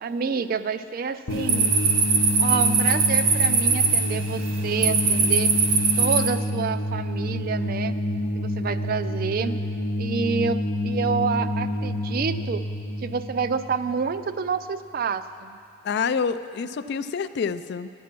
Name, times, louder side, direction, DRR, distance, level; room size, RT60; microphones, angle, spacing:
voice 1, 0.0-1.7 2.4-5.5 6.0-7.9 8.4-9.6 10.0-12.7 13.0-15.6, right 5 dB, 45° right, 12 dB, 0.3 m, -28 dB
sound 1, 1.3-14.4, left 1 dB, 75° left, 0.9 m, -28 dB
sound 2, 1.3-6.3, right 5 dB, 70° right, 1.4 m, -21 dB
voice 2, 15.8-17.9, left 6 dB, 50° left, 13 dB, 0.3 m, -27 dB
10.5 x 10.5 x 5.9 m, 2.4 s
head